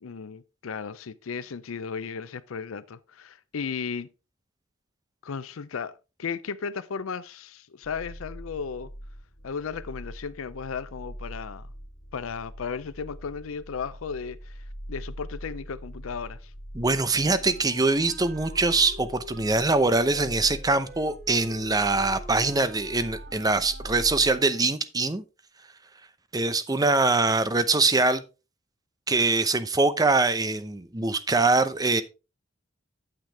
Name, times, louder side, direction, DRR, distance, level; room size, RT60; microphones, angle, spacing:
voice 1, 0.0-4.1 5.2-8.9 9.4-11.7 12.1-16.5, left 6 dB, 90° left, 0.5 m, -35 dB
sound 1, 7.8-24.4, equal, 70° left, 1.8 m, -43 dB
voice 2, 16.7-25.2 26.3-28.2 29.1-32.0, right 3 dB, 20° right, 0.7 m, -23 dB
Wind instrument woodwind instrument, 17.2-24.9, right 2 dB, 50° right, 4.2 m, -47 dB
9.1 x 7.5 x 3.4 m
head